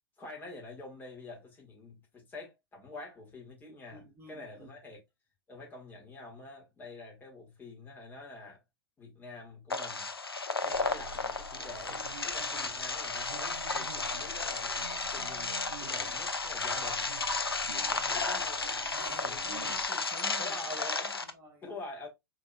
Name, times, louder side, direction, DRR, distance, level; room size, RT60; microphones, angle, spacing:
voice 1, 0.2-5.0 5.5-8.6 9.0-10.1 10.6-17.1 17.4-18.8 19.2-19.7 20.4-21.2 21.6-22.1, left 2 dB, 15° left, 1.5 m, -47 dB
voice 2, 3.9-4.8 17.6-18.2 18.9-21.7, right 2 dB, 20° right, 1.1 m, -51 dB
sound 1, 9.7-21.3, left 3 dB, 80° left, 0.5 m, -33 dB
sound 2, 10.7-19.9, right 3 dB, 65° right, 0.5 m, -49 dB
4.5 x 2.9 x 2.2 m
figure-of-eight pair, 100°, 12 cm